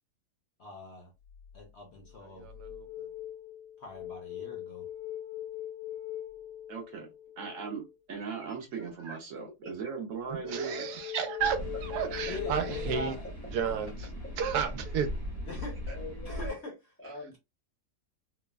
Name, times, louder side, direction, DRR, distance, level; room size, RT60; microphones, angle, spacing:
voice 1, 0.6-1.1 1.5-2.5 3.8-4.9 12.3-13.2 13.6-13.9 15.5-15.8 16.3-16.7, left 3 dB, 55° left, 0.7 m, -42 dB
sound 1, 1.3-1.6 2.1-7.9 10.4-13.1, left 12 dB, 85° left, 1.3 m, -41 dB
voice 2, 2.3-3.1 10.5-11.6 11.8-13.1 13.5-13.9 14.4-15.1, right 7 dB, 85° right, 1.1 m, -32 dB
voice 3, 6.7-7.1 7.4-10.8, right 5 dB, 65° right, 0.9 m, -38 dB
voice 4, 8.4-9.2 9.6-10.0 10.4-10.5 12.3-12.5 15.9-16.5 17.0-17.4, left 1 dB, 15° left, 0.4 m, -45 dB
sound 2, 11.4-16.5, equal, 30° right, 0.8 m, -39 dB
3.2 x 2.0 x 2.2 m
omnidirectional pair, 1.7 m